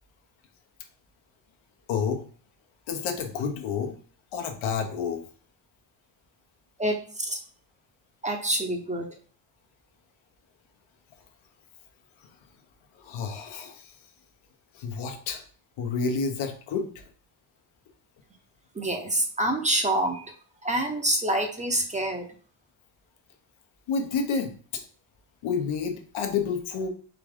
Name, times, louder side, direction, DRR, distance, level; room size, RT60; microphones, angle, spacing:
voice 1, 1.9-2.2 2.9-3.9 4.3-5.2 13.0-13.8 14.7-15.4 15.8-16.9 23.9-24.5 25.4-26.9, left 5 dB, 85° left, 4 dB, 1.0 m, -29 dB
voice 2, 6.8-7.4 8.2-9.1 18.8-20.3 20.6-22.2, right 1 dB, 15° right, 3 dB, 0.6 m, -26 dB
4.0 x 3.6 x 3.5 m, 0.43 s
cardioid pair, 145°, 45 cm